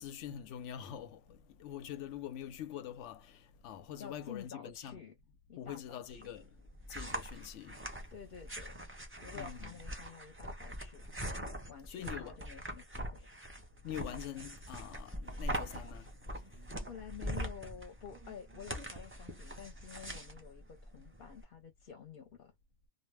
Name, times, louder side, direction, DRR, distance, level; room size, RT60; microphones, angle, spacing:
voice 1, 0.0-5.0 5.6-6.5 6.9-7.8 9.3-9.7 11.9-12.4 13.8-16.1, left 10 dB, 90° left, 0.9 m, -44 dB
voice 2, 4.0-5.1 5.5-6.3 8.1-8.8 9.2-11.0 11.7-13.3 16.4-22.5, left 7 dB, 55° left, 0.8 m, -50 dB
sound 1, 6.1-21.4, right 1 dB, 15° right, 0.6 m, -43 dB
2.2 x 2.1 x 3.2 m
omnidirectional pair, 1.2 m